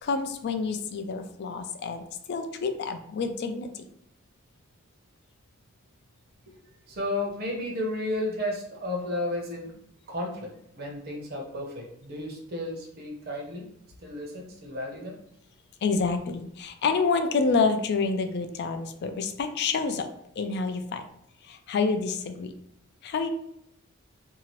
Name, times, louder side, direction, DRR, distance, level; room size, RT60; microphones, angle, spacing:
voice 1, 0.0-2.0 2.3-3.8 15.8-20.1 20.4-21.0 21.5-22.5 23.0-23.3, left 4 dB, 50° left, 8 dB, 0.3 m, -28 dB
voice 2, 6.9-9.7 10.1-13.7 14.0-15.2, left 1 dB, 50° right, 0 dB, 0.8 m, -33 dB
2.7 x 2.4 x 3.1 m, 0.74 s
head